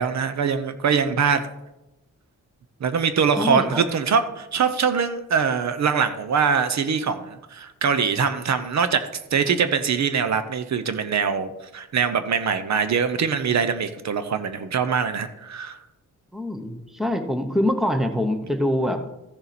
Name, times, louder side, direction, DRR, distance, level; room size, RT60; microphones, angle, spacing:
voice 1, 0.0-1.5 2.8-15.8, right 6 dB, 55° right, 10 dB, 0.8 m, -23 dB
voice 2, 3.4-3.8 16.3-19.1, left 1 dB, ahead, 7 dB, 0.8 m, -24 dB
14.0 x 6.9 x 4.2 m, 0.95 s
wide cardioid pair, 160°, 32 cm